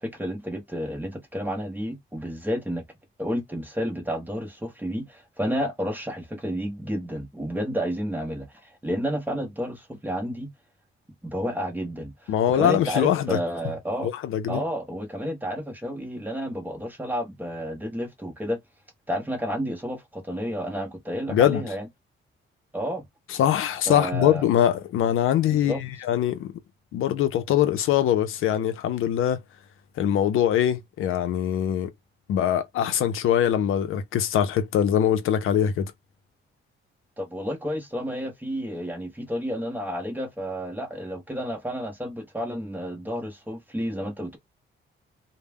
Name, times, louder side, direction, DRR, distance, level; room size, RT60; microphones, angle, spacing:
voice 1, 0.0-2.8 3.2-10.5 11.2-14.1 14.5-18.6 19.1-21.9 22.7-23.0 23.9-24.5 25.5-25.8 37.2-44.4, equal, 10° right, 0.7 m, -31 dB
voice 2, 12.3-13.4 14.0-14.6 21.3-21.6 23.3-26.5 26.9-29.4 30.0-31.9 32.3-35.9, left 10 dB, 80° left, 0.5 m, -23 dB
2.1 x 2.1 x 3.4 m
cardioid pair, 135°, 21 cm